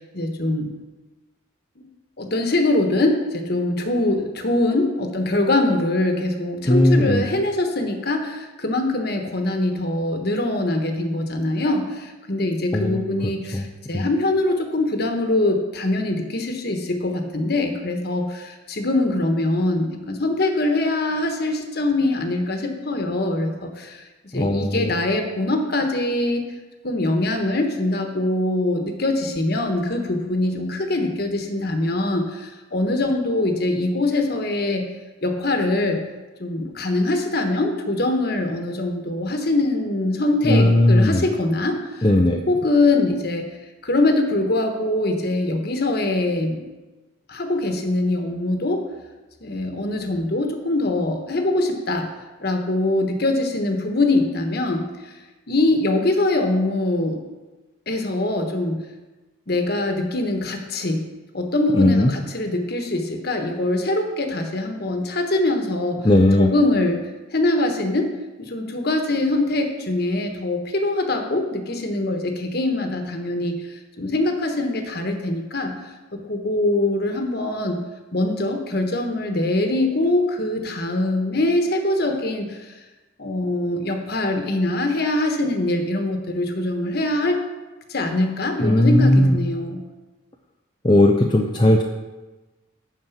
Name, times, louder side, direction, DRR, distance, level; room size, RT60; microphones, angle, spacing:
voice 1, 0.1-0.7 1.8-1.9 2.2-24.0 24.3-26.4 26.8-34.9 35.2-36.0 36.4-42.0 42.5-43.5 43.8-46.6 47.3-48.8 49.4-52.1 52.4-54.9 55.5-57.2 57.9-58.8 59.5-61.0 61.3-66.0 66.4-67.0 67.3-68.1 68.4-73.6 74.0-75.7 76.1-77.8 78.1-82.7 83.2-87.4 87.9-89.8, left 2 dB, 50° left, 4 dB, 1.2 m, -23 dB
voice 2, 6.7-7.3 12.7-13.7 13.9-14.1 24.3-24.9 40.4-41.3 42.0-42.4 61.7-62.1 66.0-66.5 88.6-89.4 90.8-91.8, left 1 dB, 20° left, 1 dB, 0.5 m, -17 dB
11.5 x 4.6 x 7.3 m, 1.2 s
head